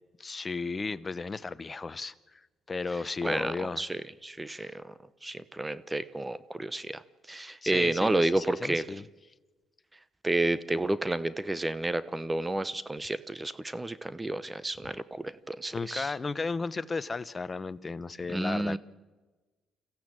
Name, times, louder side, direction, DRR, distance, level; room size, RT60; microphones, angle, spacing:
voice 1, 0.2-2.4 2.7-3.9 4.5-4.7 7.6-9.0 15.7-18.8, left 4 dB, 30° left, 16 dB, 0.9 m, -34 dB
voice 2, 3.2-4.9 5.2-7.0 7.3-8.9 10.2-16.1 18.3-18.8, right 2 dB, 15° right, 16 dB, 0.9 m, -31 dB
26.5 x 15.0 x 8.9 m, 1.3 s
supercardioid pair, 70°, 0 cm